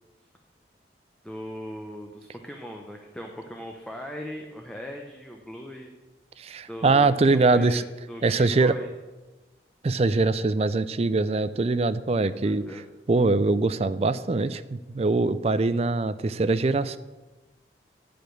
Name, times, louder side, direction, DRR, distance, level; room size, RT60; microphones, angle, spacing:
voice 1, 1.2-5.9 6.7-7.1 7.5-7.8 8.1-8.9 12.4-12.9 15.1-15.2, equal, 5° left, 1 dB, 0.7 m, -39 dB
voice 2, 6.4-7.8 8.2-8.7 9.8-12.8 13.1-17.0, right 3 dB, 35° right, 14 dB, 0.4 m, -23 dB
10.5 x 5.1 x 7.7 m, 1.2 s
head